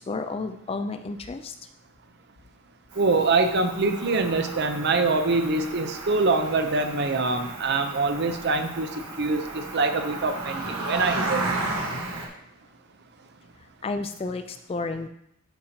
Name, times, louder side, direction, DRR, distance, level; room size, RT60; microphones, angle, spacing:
voice 1, 0.0-1.5 13.8-15.1, left 3 dB, 25° left, 8 dB, 0.3 m, -31 dB
Cricket, 2.9-12.3, right 2 dB, 90° right, 1.4 m, -34 dB
voice 2, 3.0-11.5, right 3 dB, 50° right, 7 dB, 0.6 m, -24 dB
12.5 x 4.2 x 2.8 m, 0.74 s
head